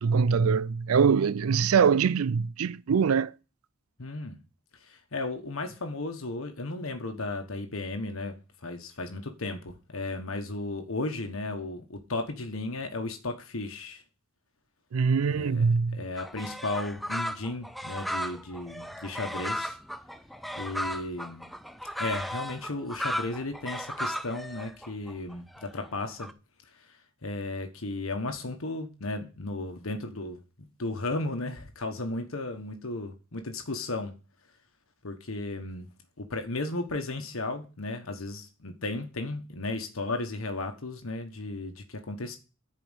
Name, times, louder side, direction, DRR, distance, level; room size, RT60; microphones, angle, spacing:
voice 1, 0.0-3.3 14.9-16.0, right 6 dB, 85° right, 0.4 m, -23 dB
voice 2, 4.0-4.4 4.8-8.4 8.6-14.0 15.3-19.8 20.6-21.5 22.0-26.3 26.8-26.9 27.2-34.1 35.0-35.9 36.2-42.4, left 2 dB, 75° left, 1.3 m, -35 dB
sound 1, 16.2-26.3, equal, ahead, 0.5 m, -35 dB
11.0 x 4.9 x 8.1 m
head